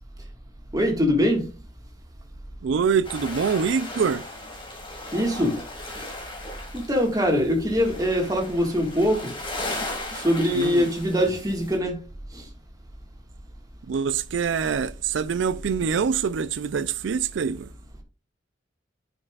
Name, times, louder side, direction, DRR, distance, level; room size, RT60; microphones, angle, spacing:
voice 1, 0.7-1.5 5.1-5.6 6.0-6.1 6.7-9.3 10.1-12.0 12.3-12.4, equal, 20° right, 1.7 m, -23 dB
voice 2, 2.6-4.2 10.5-10.9 13.9-17.7, right 6 dB, 70° right, 0.4 m, -25 dB
sound 1, 3.0-11.8, left 2 dB, 25° left, 2.1 m, -37 dB
9.3 x 5.3 x 2.4 m
head